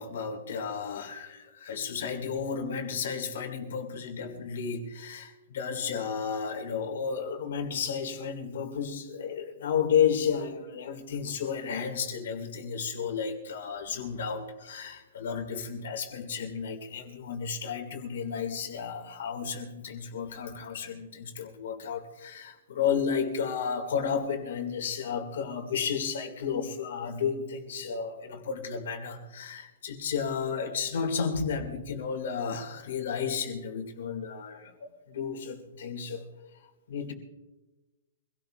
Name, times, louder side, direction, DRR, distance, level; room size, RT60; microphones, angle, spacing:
voice 1, 0.0-36.3 36.9-37.1, left 6 dB, 55° left, 4 dB, 2.4 m, -32 dB
25.5 x 17.5 x 2.6 m, 1.1 s
hypercardioid pair, 175°, 0 cm